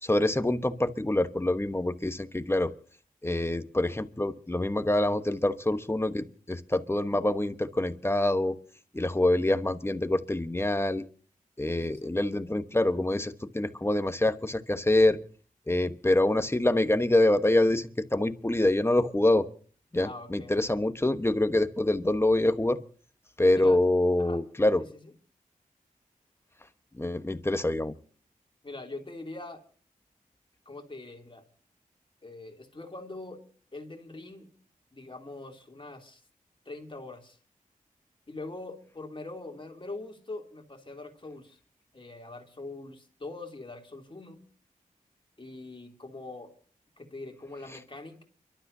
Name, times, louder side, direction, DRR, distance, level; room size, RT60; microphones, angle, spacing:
voice 1, 0.0-2.7 3.2-8.6 8.9-11.0 11.6-15.2 15.7-19.5 19.9-22.8 23.4-24.8 27.0-27.9, left 1 dB, 15° left, 9 dB, 1.2 m, -25 dB
voice 2, 11.7-12.1 20.0-20.5 23.5-23.8 24.2-24.4 25.0-25.1 28.6-29.6 30.6-31.4 32.2-33.4 33.7-34.5 34.9-36.2 36.6-37.4 38.3-41.6 41.9-44.4 45.4-46.5 47.0-48.2, left 2 dB, 35° left, 2 dB, 3.1 m, -43 dB
30.0 x 12.5 x 2.8 m, 0.42 s
cardioid pair, 60°, 15 cm